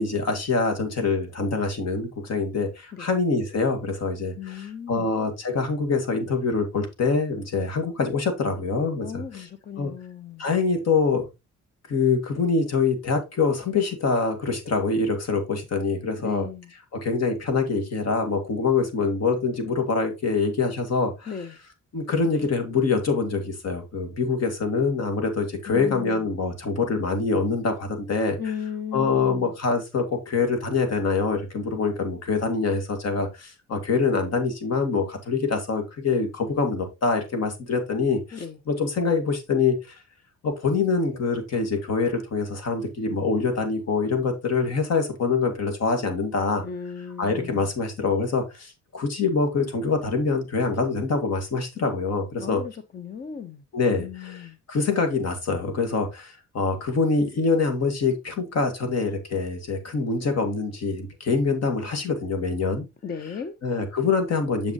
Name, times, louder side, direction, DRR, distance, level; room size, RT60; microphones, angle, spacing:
voice 1, 0.0-9.5 9.8-9.9 10.4-11.3 11.9-16.5 17.0-21.3 21.9-28.4 28.9-40.0 40.4-46.6 47.2-52.6 53.7-62.9 63.6-64.7, left 4 dB, 60° left, 2.0 m, -25 dB
voice 2, 4.4-5.1 9.0-10.5 16.2-16.7 21.3-21.6 25.7-26.3 28.4-29.5 38.3-38.6 46.6-47.7 52.4-54.6 63.0-63.6, left 7 dB, 30° left, 0.7 m, -36 dB
6.6 x 6.1 x 2.9 m
cardioid pair, 90°, 30 cm